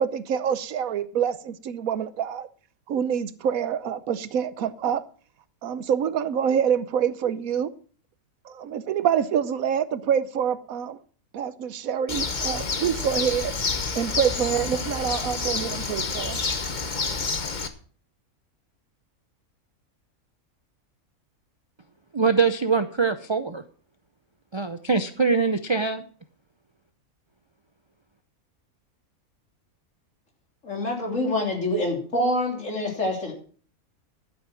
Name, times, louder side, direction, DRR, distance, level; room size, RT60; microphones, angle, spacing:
voice 1, 0.0-2.5 2.9-5.0 5.6-7.7 8.4-11.0 11.3-13.5 13.9-16.4, right 8 dB, 75° right, 1.2 m, -26 dB
Bird, 12.1-17.7, left 4 dB, 35° left, 1.1 m, -29 dB
voice 2, 22.1-23.6 24.5-26.0, right 5 dB, 40° right, 0.4 m, -23 dB
voice 3, 30.6-33.3, left 1 dB, 60° left, 3.6 m, -26 dB
12.5 x 8.0 x 6.1 m
omnidirectional pair, 1.5 m